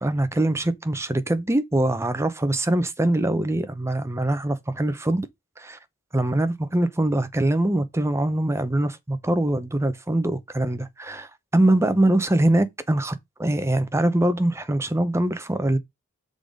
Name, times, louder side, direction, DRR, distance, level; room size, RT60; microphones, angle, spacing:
voice 1, 0.0-5.3 5.6-5.8 6.1-15.8, right 1 dB, 15° right, 0.7 m, -23 dB
6.8 x 3.9 x 5.0 m
head